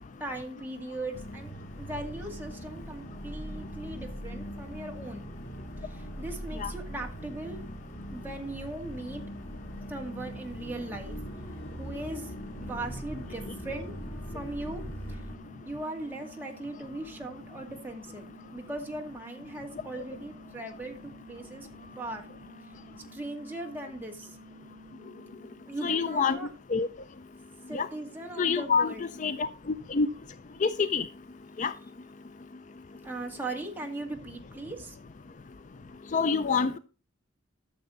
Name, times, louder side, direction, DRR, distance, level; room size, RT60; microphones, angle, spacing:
voice 1, 0.2-1.5 1.8-5.3 5.8-7.6 8.1-9.2 9.9-11.2 11.8-12.3 12.6-14.0 14.3-14.8 15.1-15.2 15.6-18.3 18.5-21.7 22.0-22.3 23.1-24.4 25.7-26.5 27.7-29.0 33.0-35.0, right 2 dB, 10° right, 2.2 m, -39 dB
sound 1, 1.1-15.4, equal, 85° left, 2.4 m, -41 dB
sound 2, 8.8-26.3, right 1 dB, 85° right, 1.2 m, -53 dB
voice 2, 25.8-26.4 26.7-26.9 27.7-27.9 28.4-29.5 29.9-30.1 30.6-31.1 31.6-31.7 36.1-36.8, left 5 dB, 40° left, 0.4 m, -26 dB
13.0 x 6.8 x 3.8 m
head